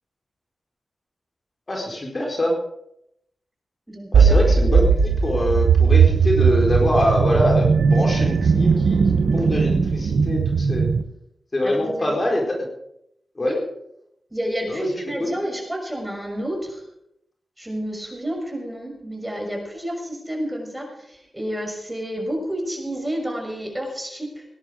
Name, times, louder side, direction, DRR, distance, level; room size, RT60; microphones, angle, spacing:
voice 1, 1.7-2.5 4.1-9.0 9.3-10.9 11.5-12.6 13.4-13.5 14.7-15.0, left 1 dB, 40° left, 0 dB, 4.3 m, -24 dB
voice 2, 3.9-4.4 11.6-12.1 13.4-13.6 14.3-16.8 17.6-24.5, equal, 10° right, 2 dB, 6.2 m, -30 dB
sound 1, 4.1-11.0, right 5 dB, 80° right, 1.0 m, -18 dB
19.0 x 10.5 x 5.0 m, 0.78 s
cardioid pair, 45°, 0 cm